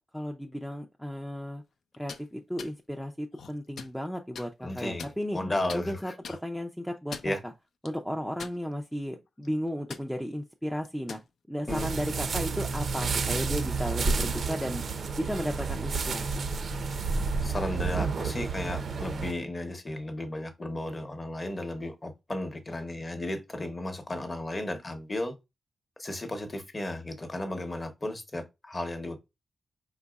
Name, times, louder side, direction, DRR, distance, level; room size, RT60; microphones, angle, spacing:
voice 1, 0.0-1.6 2.0-5.4 5.7-7.5 7.8-11.2 11.5-14.8 15.2-16.4, equal, ahead, 0.4 m, -34 dB
sound 1, 1.9-2.2 2.6-2.7 3.3-3.9 4.3-4.5 5.0-5.4 5.7-5.8 6.2-6.4 6.9-7.4 7.8-7.9 8.4-8.9 9.3-9.5 9.9-10.1 10.8-11.3, left 6 dB, 75° left, 0.5 m, -42 dB
voice 2, 4.6-6.1 7.2-7.4 11.7-11.9 17.4-25.3 26.0-29.2, left 1 dB, 20° left, 0.8 m, -34 dB
sound 2, 11.7-19.3, right 4 dB, 50° right, 0.5 m, -30 dB
5.3 x 4.0 x 2.3 m
wide cardioid pair, 175°, 0 cm